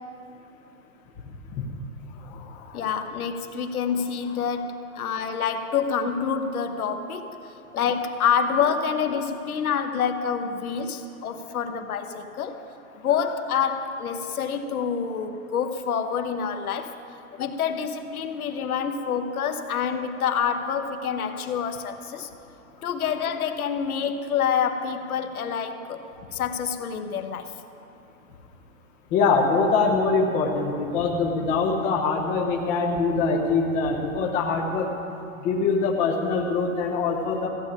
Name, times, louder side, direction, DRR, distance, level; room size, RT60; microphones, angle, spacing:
voice 1, 2.2-2.9 29.1-34.9 35.4-37.5, left 4 dB, 20° left, 0 dB, 0.9 m, -24 dB
voice 2, 2.7-12.6 13.0-16.9 17.3-22.3 22.8-26.0 26.3-27.5 32.0-32.1, left 7 dB, 85° left, 7 dB, 1.2 m, -27 dB
15.0 x 7.2 x 8.6 m, 2.9 s
hypercardioid pair, 165°, 42 cm